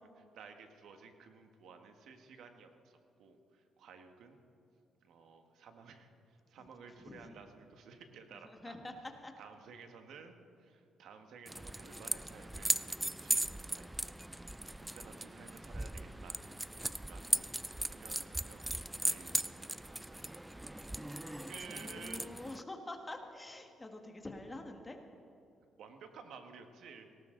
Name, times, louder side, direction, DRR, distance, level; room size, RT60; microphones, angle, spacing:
voice 1, 0.2-4.4 5.0-8.8 9.4-16.4 17.0-17.5 17.8-18.7 19.0-20.3 20.7-20.8 21.5-22.3 25.8-27.1, right 5 dB, 75° right, 6 dB, 1.6 m, -54 dB
voice 2, 7.0-7.4 8.4-9.0 9.2-9.3 21.3-25.0, left 2 dB, 20° left, 4 dB, 1.6 m, -47 dB
sound 1, 11.5-22.6, right 1 dB, 10° right, 0.4 m, -38 dB
18.5 x 18.0 x 3.9 m, 2.5 s
cardioid pair, 90°, 0 cm